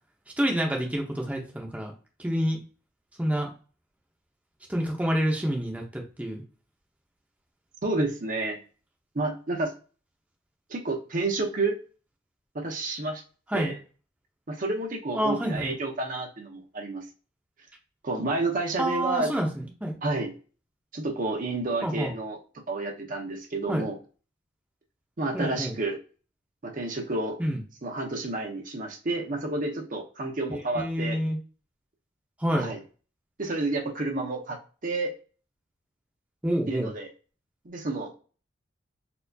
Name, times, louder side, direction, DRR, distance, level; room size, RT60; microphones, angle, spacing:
voice 1, 0.4-1.9 2.2-2.6 3.2-3.5 4.7-6.4 13.5-13.8 15.1-15.7 18.8-20.0 21.8-22.1 23.7-23.9 25.3-25.8 27.4-27.6 30.5-31.4 32.4-32.7 36.4-36.9, equal, 5° right, 0 dB, 0.6 m, -28 dB
voice 2, 7.8-8.6 9.1-9.7 10.7-11.8 12.5-13.2 13.5-13.8 14.5-17.1 18.0-19.3 20.0-20.3 20.9-22.4 22.7-24.0 25.2-26.0 26.6-27.4 27.8-31.2 32.6-32.8 33.4-35.1 36.7-37.1 37.6-38.1, right 2 dB, 45° right, 2 dB, 0.7 m, -30 dB
4.3 x 2.3 x 2.7 m, 0.36 s
head